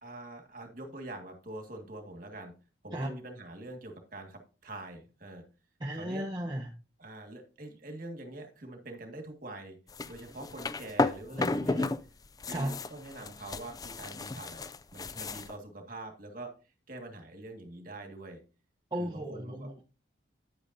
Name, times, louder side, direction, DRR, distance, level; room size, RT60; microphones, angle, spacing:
voice 1, 0.0-2.5 2.8-5.4 6.0-6.2 7.0-9.8 10.1-11.9 12.4-14.6 14.9-16.5 16.9-18.4 19.0-19.7, right 2 dB, 45° right, 4 dB, 2.0 m, -44 dB
voice 2, 5.8-6.7 11.4-11.7 12.5-12.7 18.9-19.8, right 1 dB, 20° right, -1 dB, 1.0 m, -35 dB
sound 1, 9.9-12.0 12.3-15.5, left 3 dB, 20° left, 0.4 m, -33 dB
9.9 x 8.7 x 2.7 m, 0.33 s
head